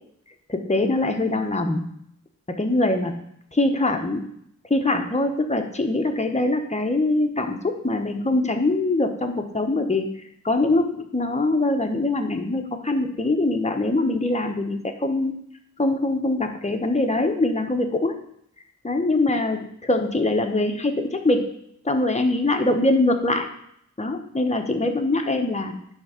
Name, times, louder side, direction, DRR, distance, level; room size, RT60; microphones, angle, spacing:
voice 1, 0.5-1.9 2.5-3.1 3.5-4.3 4.7-10.1 10.4-15.3 15.8-18.2 18.8-21.5 21.8-23.5 24.0-25.8, left 2 dB, 20° left, 4 dB, 1.1 m, -23 dB
10.5 x 3.6 x 6.5 m, 0.71 s
wide cardioid pair, 95°, 30 cm